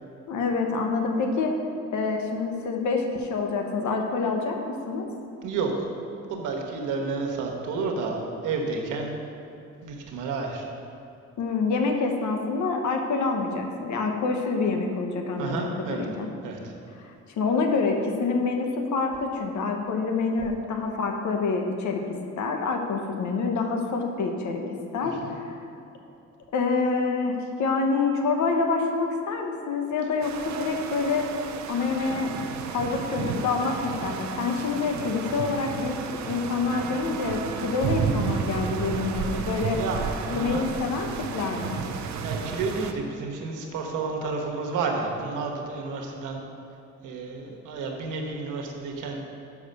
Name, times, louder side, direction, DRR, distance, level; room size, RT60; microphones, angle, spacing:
voice 1, 0.3-1.6 1.9-5.1 11.4-16.3 17.0-24.6 24.9-25.6 26.5-31.3 31.7-32.3 32.7-36.0 36.3-39.8 40.3-41.8, left 4 dB, 70° left, 3 dB, 1.0 m, -27 dB
voice 2, 5.4-5.9 6.3-9.2 9.8-10.6 15.4-16.0 16.4-16.7 25.0-25.3 39.7-40.7 42.0-46.4 47.0-49.2, right 4 dB, 90° right, 1 dB, 1.1 m, -31 dB
sound 1, 30.2-42.9, right 6 dB, 70° right, 0.6 m, -32 dB
6.0 x 4.8 x 6.6 m, 2.8 s
cardioid pair, 90°, 30 cm